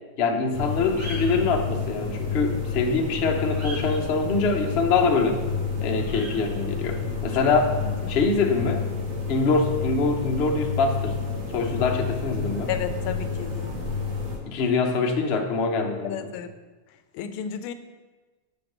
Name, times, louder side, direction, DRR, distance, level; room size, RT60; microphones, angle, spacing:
voice 1, 0.2-5.4 5.8-7.8 8.1-8.8 9.3-11.2 11.5-12.7 14.4-16.3, left 4 dB, 60° left, 3 dB, 0.6 m, -24 dB
sound 1, 0.5-14.4, left 4 dB, 60° right, 2.2 m, -30 dB
voice 2, 7.8-8.2 12.7-13.9 16.0-16.5 17.1-17.7, left 8 dB, 85° left, 9 dB, 1.5 m, -33 dB
6.8 x 5.4 x 6.5 m, 1.3 s
omnidirectional pair, 2.3 m